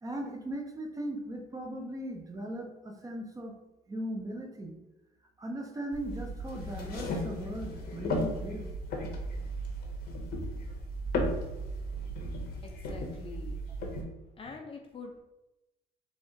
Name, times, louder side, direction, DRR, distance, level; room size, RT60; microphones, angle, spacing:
voice 1, 0.0-3.6 3.9-4.8 5.4-8.7, right 1 dB, 20° right, 2 dB, 0.6 m, -38 dB
sound 1, 5.9-14.0, equal, 70° left, 1.0 m, -35 dB
voice 2, 12.6-13.6 14.4-15.2, left 4 dB, 35° left, 3 dB, 0.5 m, -45 dB
4.1 x 2.5 x 3.9 m, 0.98 s
cardioid pair, 110°, 17 cm